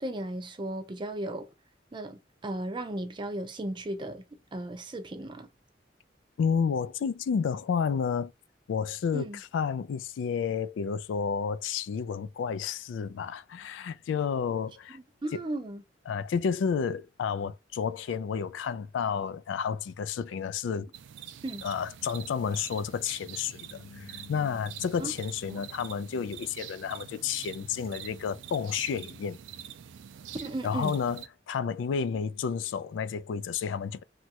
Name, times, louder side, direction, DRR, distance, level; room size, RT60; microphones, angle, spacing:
voice 1, 0.0-1.5 1.9-4.2 4.5-5.5 9.1-9.4 14.9-15.8 21.4-21.6 25.0-25.1 25.5-25.6 30.4-30.9, right 1 dB, 25° right, 0.4 m, -35 dB
voice 2, 6.4-8.3 8.7-15.0 15.3-15.4 16.1-20.9 21.6-29.4 30.6-34.0, left 6 dB, 85° left, 0.3 m, -31 dB
sound 1, 20.9-31.3, right 9 dB, 85° right, 0.4 m, -46 dB
3.0 x 2.3 x 2.8 m
head